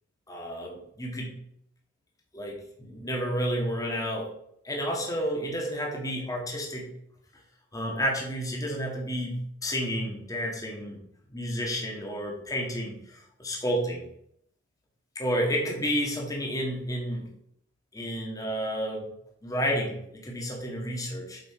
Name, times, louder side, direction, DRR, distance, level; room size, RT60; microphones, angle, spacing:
voice 1, 0.3-1.3 2.3-4.3 4.6-6.9 7.7-11.0 11.3-14.1 15.1-17.3 17.9-19.0 19.4-21.4, equal, 20° left, -1 dB, 1.8 m, -31 dB
7.9 x 5.1 x 4.9 m, 0.72 s
head